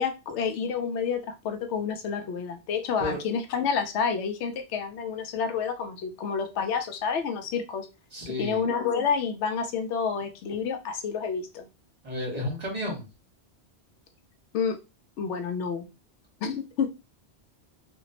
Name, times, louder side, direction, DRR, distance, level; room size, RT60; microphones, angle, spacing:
voice 1, 0.0-7.9 8.4-11.7 14.5-14.8 15.2-15.9 16.4-16.9, left 6 dB, 90° left, 7 dB, 0.9 m, -29 dB
voice 2, 8.1-8.6 12.0-13.0, left 1 dB, 35° right, -2 dB, 1.4 m, -32 dB
2.9 x 2.5 x 2.7 m, 0.27 s
omnidirectional pair, 1.1 m